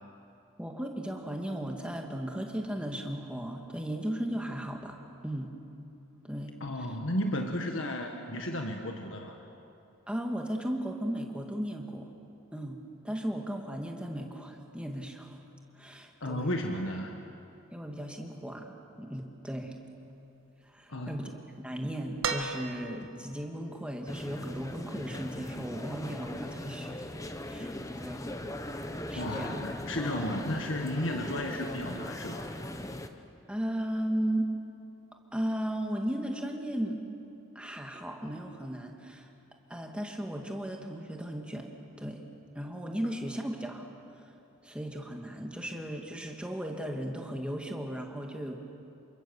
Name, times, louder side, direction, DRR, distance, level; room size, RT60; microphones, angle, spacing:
voice 1, 0.6-5.5 6.2-6.5 10.1-12.1 12.5-15.4 15.7-16.6 17.7-18.7 19.0-19.8 20.7-21.3 21.6-27.0 27.5-28.3 28.8-29.5 33.5-34.5 35.3-37.0 37.6-39.3 39.7-41.7 42.0-42.2 42.6-44.3 44.6-48.6, right 1 dB, 5° right, 2 dB, 2.0 m, -36 dB
voice 2, 6.6-9.4 16.2-17.2 20.9-21.3 29.1-32.5, left 1 dB, 65° left, 3 dB, 1.6 m, -33 dB
sound 1, 22.2-23.2 24.8-24.9, right 5 dB, 75° right, 1.6 m, -34 dB
sound 2, 24.1-33.1, left 1 dB, 15° left, 1.0 m, -39 dB
28.5 x 25.5 x 7.1 m, 2.8 s
head